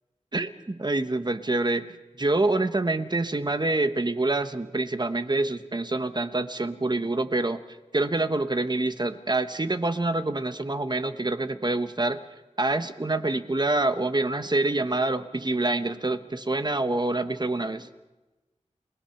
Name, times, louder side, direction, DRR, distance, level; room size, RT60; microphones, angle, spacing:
voice 1, 0.3-1.8 2.2-7.6 7.9-12.2 12.6-17.9, right 2 dB, 35° right, 10 dB, 1.1 m, -26 dB
30.0 x 18.5 x 5.9 m, 1.1 s
wide cardioid pair, 65°, 12 cm